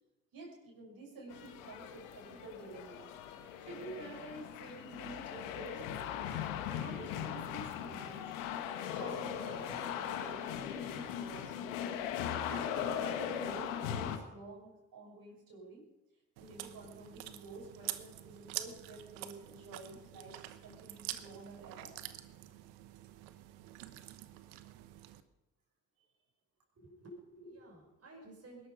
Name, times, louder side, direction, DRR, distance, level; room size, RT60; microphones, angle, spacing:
voice 1, 0.3-3.2 3.6-6.4 6.8-8.4 8.8-11.9 12.4-15.9 16.4-21.9, right 2 dB, 60° right, -1 dB, 6.6 m, -50 dB
sound 1, 1.3-14.2, left 9 dB, 85° left, 1.5 m, -39 dB
Chewing mastication, 16.4-25.2, right 15 dB, 85° right, 1.0 m, -46 dB
voice 2, 26.8-28.7, right 1 dB, 40° right, -1 dB, 5.9 m, -53 dB
20.0 x 12.5 x 5.3 m, 0.99 s
hypercardioid pair, 55°, 38 cm